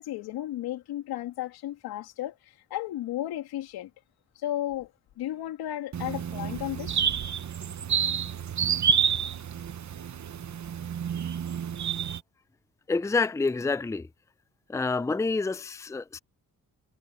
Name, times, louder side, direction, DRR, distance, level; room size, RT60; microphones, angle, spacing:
voice 1, 0.0-3.9 4.4-4.9 5.2-7.0, left 13 dB, 90° left, 3.0 m, -34 dB
sound 1, 5.9-12.2, right 7 dB, 50° right, 1.2 m, -29 dB
voice 2, 12.9-14.1 14.7-16.2, left 3 dB, 10° left, 0.5 m, -28 dB
supercardioid pair, 60°, 37 cm